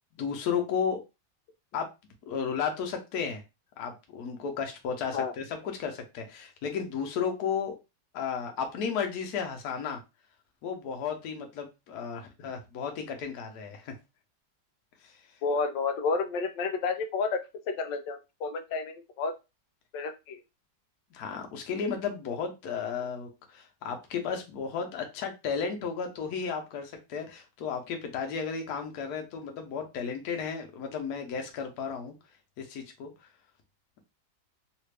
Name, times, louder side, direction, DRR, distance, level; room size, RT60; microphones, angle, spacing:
voice 1, 0.1-1.0 1.7-1.9 2.2-3.4 3.8-7.7 8.1-10.0 10.6-13.9 15.0-15.3 21.1-32.1 32.6-33.3, left 6 dB, 65° left, 4 dB, 1.2 m, -33 dB
voice 2, 15.4-17.4 17.7-19.3 19.9-20.4, left 4 dB, 85° left, 6 dB, 1.3 m, -30 dB
3.2 x 2.5 x 3.2 m, 0.26 s
omnidirectional pair, 1.9 m